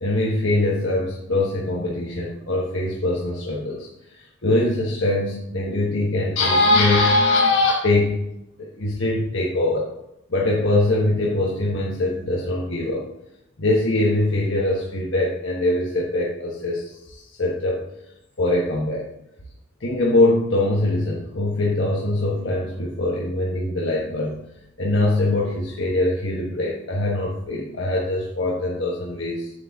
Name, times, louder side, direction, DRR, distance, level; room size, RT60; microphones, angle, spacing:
voice 1, 0.0-3.9 4.1-8.2 8.6-9.9 10.3-13.1 13.6-17.8 18.4-19.0 19.8-24.4 24.8-29.5, left 2 dB, 90° left, -3 dB, 1.3 m, -22 dB
9.2 x 8.2 x 2.8 m, 0.86 s
head